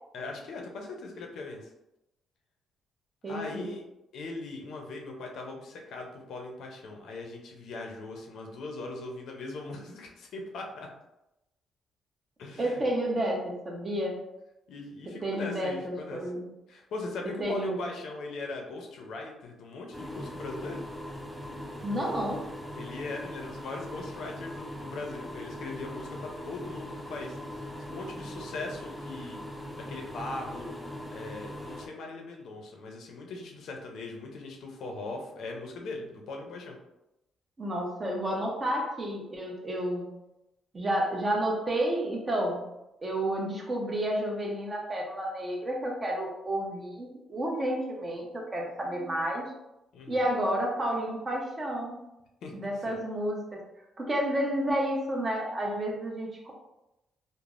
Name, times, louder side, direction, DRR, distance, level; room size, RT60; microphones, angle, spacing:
voice 1, 0.1-1.7 3.3-3.8 4.1-10.9 12.4-12.8 14.7-16.2 16.7-20.8 22.7-29.4 29.7-30.8 31.1-36.8 49.9-50.2 52.4-52.5 52.9-53.0, left 2 dB, 70° left, 1 dB, 0.5 m, -40 dB
voice 2, 3.2-3.7 12.6-14.2 15.2-16.5 17.4-17.8 21.8-22.4 37.6-40.1 40.7-42.6 43.0-49.5 50.1-52.0 52.5-53.6 54.0-56.5, right 1 dB, 30° right, -1 dB, 0.8 m, -30 dB
sound 1, 19.9-31.9, left 1 dB, ahead, 0.6 m, -40 dB
3.3 x 2.0 x 2.4 m, 0.92 s
supercardioid pair, 70°, 0 cm